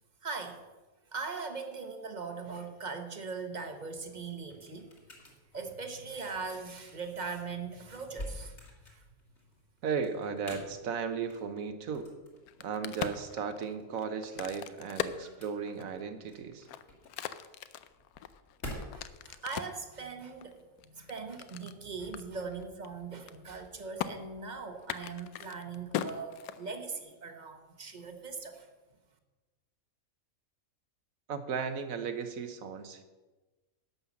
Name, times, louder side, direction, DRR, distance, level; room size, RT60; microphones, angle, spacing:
voice 1, 0.2-0.6 1.1-4.9 5.5-8.6 8.9-9.0 18.9-20.6 20.9-28.7, right 4 dB, 35° right, 6 dB, 1.0 m, -40 dB
sound 1, 4.0-19.3, left 1 dB, 50° left, 2.3 m, -49 dB
voice 2, 9.8-12.1 12.6-16.7 31.3-33.0, right 6 dB, 70° right, 9 dB, 1.3 m, -35 dB
Crack, 12.4-16.0 16.5-19.8 20.4-21.8 22.1-22.2 22.5-22.9 23.1-23.7 24.0-24.1 24.8-27.0, left 10 dB, 85° left, 1.1 m, -39 dB
11.5 x 5.6 x 7.1 m, 1.2 s
omnidirectional pair, 1.5 m